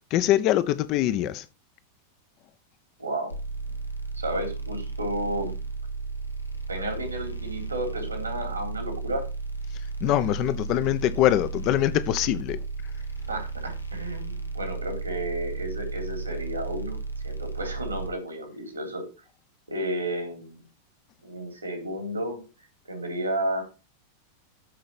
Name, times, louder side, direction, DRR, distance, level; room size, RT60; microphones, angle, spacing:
voice 1, 0.1-1.4 10.0-12.6, left 13 dB, 40° left, 0.9 m, -23 dB
voice 2, 3.0-3.3 4.2-5.5 6.7-9.3 13.3-17.0 17.2-19.1 19.7-20.6 21.2-22.5 22.9-23.6, right 1 dB, 80° right, 3.7 m, -32 dB
sound 1, 3.3-18.1, right 4 dB, 85° left, 1.2 m, -34 dB
13.0 x 5.2 x 4.3 m
figure-of-eight pair, 90°, 0 cm